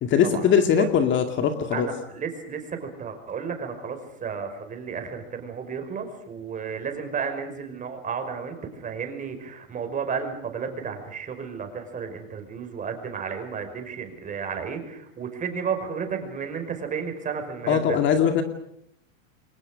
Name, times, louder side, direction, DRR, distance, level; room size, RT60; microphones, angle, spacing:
voice 1, 0.0-1.9 17.7-18.4, left 8 dB, 30° left, 6 dB, 2.2 m, -21 dB
voice 2, 1.7-18.0, right 6 dB, 20° right, 6 dB, 5.6 m, -32 dB
29.5 x 23.0 x 6.4 m, 0.72 s
hypercardioid pair, 135°, 39 cm